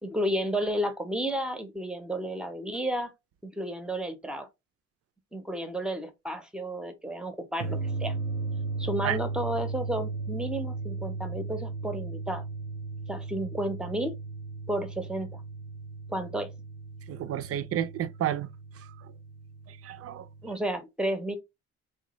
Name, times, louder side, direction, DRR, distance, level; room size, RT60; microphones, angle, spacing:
voice 1, 0.0-3.1 3.4-4.5 5.3-8.1 8.8-12.4 13.1-14.2 14.7-15.4 16.1-16.5 20.4-21.4, right 1 dB, 5° right, 0.6 m, -32 dB
sound 1, 7.6-20.5, right 3 dB, 85° right, 0.7 m, -36 dB
voice 2, 17.1-18.5 19.7-20.3, right 11 dB, 50° right, 0.4 m, -31 dB
3.1 x 2.2 x 2.9 m
cardioid pair, 90°, 30 cm